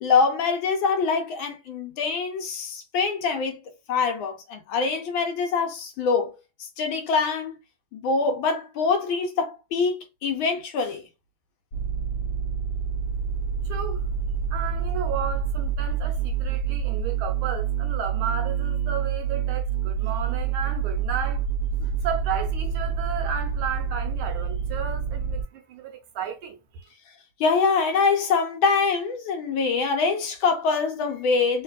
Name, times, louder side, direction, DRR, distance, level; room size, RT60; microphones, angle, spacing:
voice 1, 0.0-3.6 3.9-7.6 7.9-11.0 21.8-21.9 27.4-31.6, left 4 dB, 70° left, 1.4 m, -24 dB
sound 1, 11.7-25.4, right 7 dB, 50° left, 1.2 m, -27 dB
voice 2, 13.6-14.1 14.5-21.4 22.0-26.9, right 8 dB, 80° right, 1.5 m, -33 dB
3.3 x 3.0 x 2.3 m
omnidirectional pair, 2.4 m